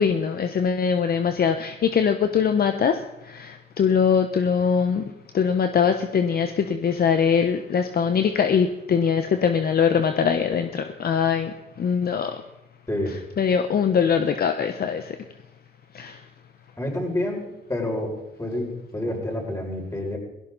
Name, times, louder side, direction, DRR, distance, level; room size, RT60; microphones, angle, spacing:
voice 1, 0.0-3.0 3.3-5.0 5.3-12.4 13.4-15.2 15.9-16.2, left 7 dB, 50° left, 7 dB, 1.0 m, -22 dB
voice 2, 16.8-18.1 18.4-20.2, left 1 dB, 15° left, -1 dB, 6.3 m, -28 dB
17.5 x 16.5 x 4.1 m, 0.93 s
cardioid pair, 90°, 20 cm